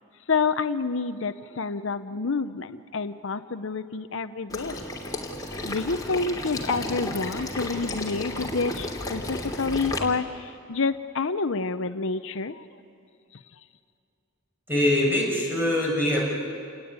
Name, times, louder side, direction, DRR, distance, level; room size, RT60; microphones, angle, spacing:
voice 1, 0.3-4.9 5.6-12.7 13.3-13.6, left 4 dB, 65° left, 11 dB, 0.8 m, -28 dB
Water / Liquid, 4.5-10.0, left 2 dB, 15° left, 3.2 m, -33 dB
voice 2, 14.7-16.2, left 1 dB, 10° right, -3 dB, 7.1 m, -23 dB
28.5 x 19.5 x 9.6 m, 2.5 s
head